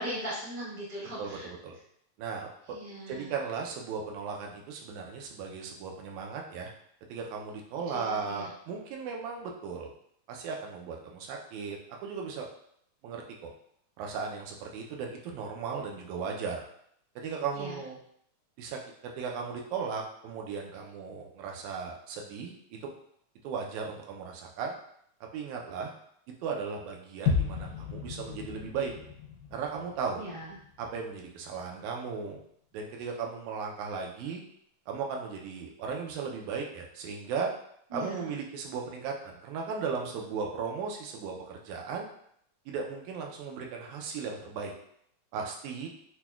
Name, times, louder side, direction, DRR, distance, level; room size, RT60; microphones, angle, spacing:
voice 1, 0.0-1.5 2.7-3.3 7.9-8.5 17.5-17.8 30.2-30.6 37.9-38.3, equal, 60° right, -8 dB, 0.4 m, -39 dB
voice 2, 1.2-1.7 2.2-2.5 3.1-6.7 7.1-9.9 10.3-12.5 13.0-13.5 14.0-16.6 17.2-18.0 18.6-22.9 23.4-24.7 25.2-25.9 26.4-28.9 29.5-30.2 30.8-32.4 32.7-34.4 34.9-37.5 37.9-42.1 42.7-44.7 45.3-45.9, right 5 dB, 80° right, 1 dB, 1.9 m, -36 dB
sound 1, 27.3-31.2 31.5-31.6, left 6 dB, 85° left, 2.0 m, -34 dB
5.9 x 2.1 x 2.3 m, 0.69 s
omnidirectional pair, 3.5 m